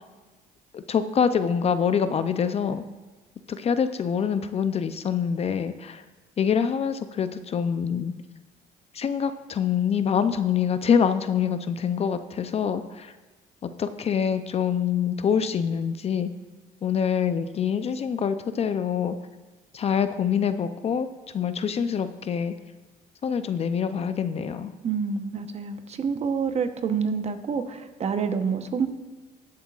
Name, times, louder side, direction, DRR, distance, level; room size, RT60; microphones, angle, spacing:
voice 1, 0.7-2.9 3.5-6.0 6.4-8.1 8.9-13.1 13.6-16.3 16.8-19.2 19.7-21.1 21.3-22.5 23.2-24.7, left 7 dB, 35° left, 11 dB, 0.5 m, -25 dB
voice 2, 24.8-28.9, right 6 dB, 40° right, 8 dB, 0.9 m, -27 dB
20.0 x 7.5 x 2.4 m, 1.2 s
cardioid pair, 110°, 17 cm